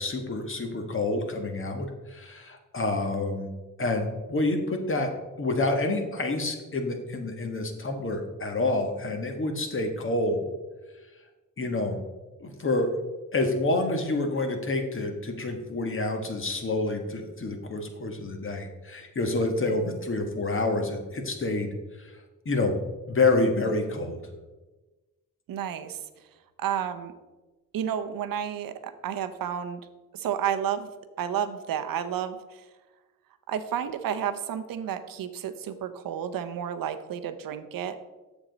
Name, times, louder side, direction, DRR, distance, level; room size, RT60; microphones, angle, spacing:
voice 1, 0.0-3.5 3.8-5.1 5.4-10.4 11.6-12.1 12.4-13.0 13.3-22.2 22.4-22.8 23.1-24.2, left 2 dB, 40° left, 5 dB, 1.4 m, -28 dB
voice 2, 25.5-26.0 26.6-27.1 27.7-29.8 30.1-30.9 31.2-32.6 33.5-38.0, right 9 dB, 80° right, 9 dB, 0.7 m, -31 dB
7.2 x 7.1 x 3.9 m, 1.2 s
cardioid pair, 75°, 33 cm